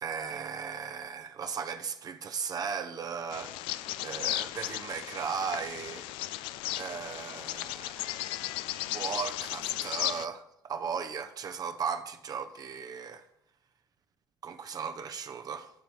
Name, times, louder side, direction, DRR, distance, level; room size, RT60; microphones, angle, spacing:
voice 1, 0.0-6.1 6.7-8.5 8.8-13.2 14.4-15.7, right 6 dB, 40° right, 0.7 m, -37 dB
Bird vocalization bird call bird song, 3.3-10.2, left 15 dB, 60° left, 0.4 m, -35 dB
13.0 x 4.4 x 6.9 m
figure-of-eight pair, 50°, 10 cm